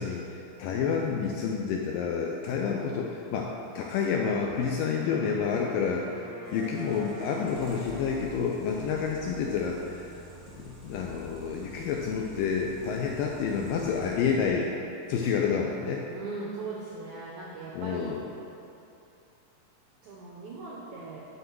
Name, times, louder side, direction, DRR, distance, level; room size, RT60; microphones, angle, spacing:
voice 1, 0.0-6.2 6.5-10.0 10.5-14.7 15.1-16.1 17.7-18.2, left 6 dB, 80° left, 0 dB, 2.0 m, -29 dB
Wind instrument woodwind instrument, 4.9-9.0, right 1 dB, 60° left, 2.9 m, -45 dB
sound 1, 6.4-14.5, right 1 dB, 25° right, 0.5 m, -48 dB
voice 2, 16.1-18.2 20.0-21.3, right 3 dB, 85° right, -4 dB, 1.6 m, -39 dB
11.5 x 4.5 x 4.6 m, 2.7 s
omnidirectional pair, 4.4 m